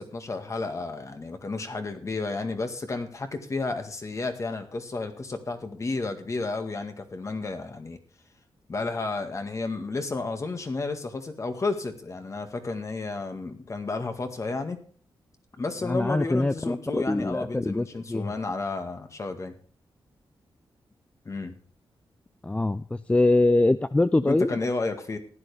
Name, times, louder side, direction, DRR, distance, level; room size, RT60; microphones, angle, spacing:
voice 1, 0.0-8.0 8.7-14.8 15.6-19.5 21.3-21.6 24.2-25.2, left 3 dB, 35° left, 7 dB, 1.8 m, -32 dB
voice 2, 15.8-18.3 22.4-24.6, left 2 dB, 15° left, 13 dB, 0.4 m, -24 dB
15.0 x 11.0 x 3.4 m, 0.44 s
wide cardioid pair, 115°, 9 cm